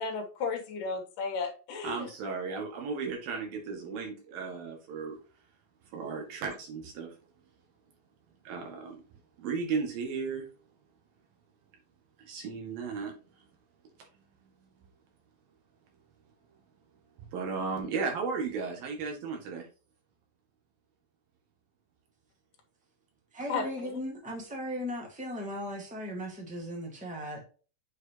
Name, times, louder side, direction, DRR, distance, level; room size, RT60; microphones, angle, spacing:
voice 1, 0.0-2.1 23.5-23.6, left 4 dB, 70° left, 4 dB, 2.6 m, -33 dB
voice 2, 1.8-5.2 5.9-7.1 8.5-9.0 9.4-10.5 12.2-13.1 17.3-19.7, right 5 dB, 75° right, 1 dB, 3.7 m, -35 dB
voice 3, 23.3-27.4, equal, 5° right, -1 dB, 1.0 m, -37 dB
7.8 x 4.9 x 3.0 m, 0.37 s
omnidirectional pair, 4.1 m